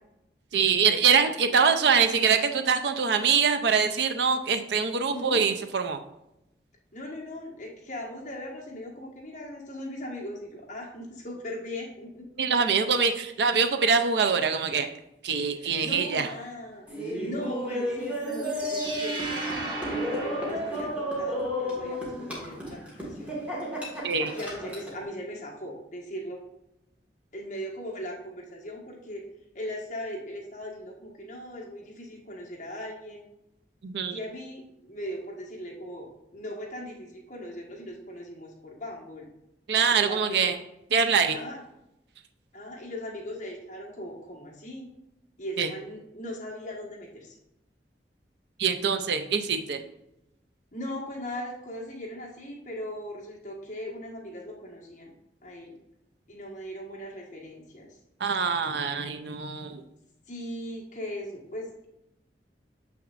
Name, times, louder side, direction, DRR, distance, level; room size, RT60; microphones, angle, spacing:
voice 1, 0.5-6.0 12.4-14.9 15.2-16.3 24.0-24.3 33.8-34.2 39.7-40.6 40.9-41.4 45.6-45.7 48.6-49.8 58.2-59.8, right 6 dB, 75° right, 7 dB, 0.5 m, -24 dB
voice 2, 5.1-5.4 6.9-12.2 15.6-23.4 24.3-26.4 27.3-29.2 29.5-33.2 34.1-39.3 39.9-40.5 41.3-41.6 42.5-44.9 45.4-47.4 50.7-55.1 55.4-55.7 56.3-57.9 60.3-61.9, equal, 45° left, -2 dB, 1.5 m, -39 dB
Laughter, 16.9-25.0, equal, 10° right, 1.6 m, -32 dB
sound 1, 18.2-21.3, right 2 dB, 25° right, 1.6 m, -37 dB
7.1 x 5.9 x 2.5 m, 0.86 s
head